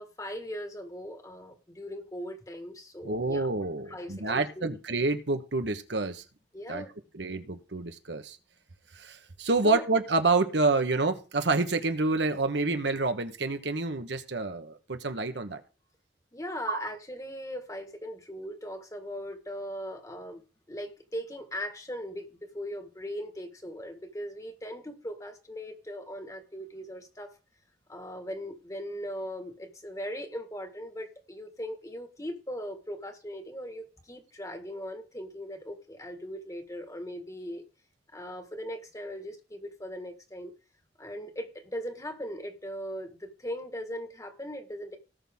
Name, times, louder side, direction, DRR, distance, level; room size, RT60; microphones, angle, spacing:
voice 1, 0.0-3.5 3.9-4.7 6.5-6.9 9.6-9.8 16.3-20.4 20.7-27.3 27.9-37.6 38.1-40.5 41.0-45.0, equal, 20° left, 6 dB, 1.6 m, -39 dB
voice 2, 3.0-6.2 6.7-6.8 7.1-8.4 8.9-15.6 16.7-16.8, right 3 dB, 75° right, 8 dB, 1.2 m, -28 dB
18.0 x 6.1 x 3.7 m, 0.35 s
head